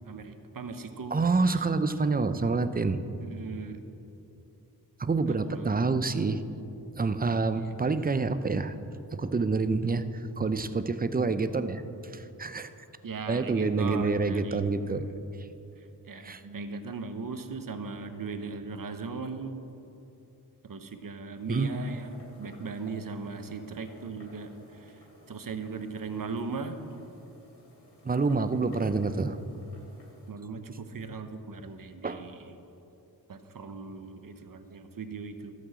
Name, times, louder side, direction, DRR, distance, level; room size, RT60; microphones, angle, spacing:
voice 1, 0.1-1.2 1.5-1.7 2.2-2.5 3.2-3.8 5.3-5.9 7.5-7.8 13.0-15.1 15.8-19.6 20.6-26.8 29.1-29.3 30.3-32.6 33.3-35.5, right 4 dB, 55° right, 8 dB, 1.0 m, -38 dB
voice 2, 1.1-3.0 5.0-6.4 7.0-8.7 9.1-11.8 12.1-12.7 13.3-15.1 16.1-16.4 21.5-21.7 28.0-29.4 32.0-32.2, right 4 dB, 20° right, 11 dB, 0.6 m, -27 dB
sound 1, 21.3-30.3, equal, 90° left, 3.0 m, -56 dB
13.0 x 6.2 x 7.5 m, 2.9 s
cardioid pair, 60°, 40 cm